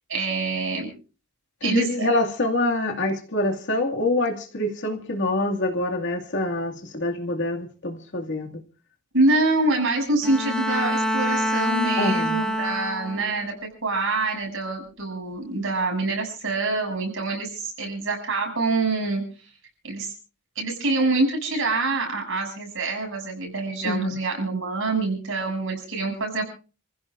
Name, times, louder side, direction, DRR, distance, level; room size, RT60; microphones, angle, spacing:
voice 1, 0.1-0.9 1.6-2.1 9.1-13.5 13.8-19.2 19.8-20.1 20.6-26.4, right 2 dB, 65° right, 7.2 m, -25 dB
voice 2, 1.6-8.6 12.0-12.4 23.8-24.2, left 2 dB, 60° left, 2.4 m, -25 dB
Bowed string instrument, 10.2-13.4, equal, 5° left, 1.6 m, -26 dB
29.5 x 15.5 x 2.6 m
head